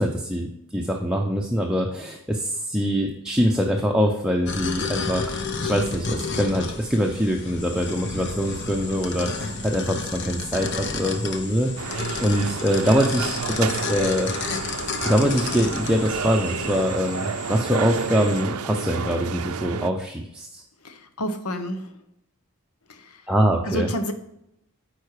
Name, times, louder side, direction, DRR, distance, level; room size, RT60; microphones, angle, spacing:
voice 1, 0.0-14.3 15.0-20.6 23.3-23.9, equal, 5° right, 0 dB, 0.6 m, -24 dB
sound 1, 4.5-16.8, left 4 dB, 55° left, 1.0 m, -32 dB
sound 2, 7.6-18.4, left 3 dB, 20° left, 1.1 m, -41 dB
sound 3, 11.8-19.9, right 6 dB, 80° right, 0.6 m, -30 dB
voice 2, 20.8-21.9 23.7-24.1, equal, 85° left, 8 dB, 1.1 m, -29 dB
9.5 x 4.5 x 4.8 m, 0.81 s
head